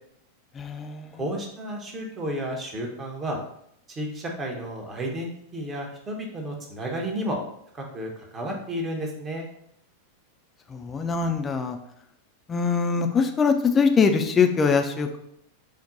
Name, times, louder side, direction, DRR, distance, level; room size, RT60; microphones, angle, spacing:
voice 1, 0.5-1.2 10.7-11.8 12.5-15.2, left 5 dB, 20° left, 6 dB, 0.4 m, -23 dB
voice 2, 1.2-3.4 3.9-7.4 7.7-9.5, right 1 dB, 20° right, 1 dB, 0.9 m, -32 dB
4.4 x 2.1 x 3.8 m, 0.73 s
figure-of-eight pair, 90°, 0 cm